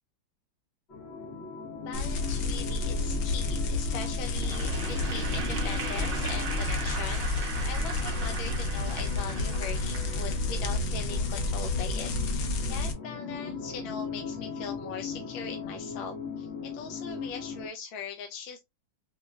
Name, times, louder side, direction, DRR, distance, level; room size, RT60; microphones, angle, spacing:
sound 1, 0.9-17.7, left 5 dB, 50° left, 0.8 m, -39 dB
voice 1, 1.9-7.3 7.7-12.1 12.7-18.6, left 6 dB, 80° left, 1.3 m, -40 dB
sound 2, 1.9-12.9, left 2 dB, 65° left, 1.1 m, -30 dB
Applause / Crowd, 4.4-10.7, right 4 dB, 75° right, 0.5 m, -39 dB
4.8 x 2.1 x 2.2 m
omnidirectional pair, 2.1 m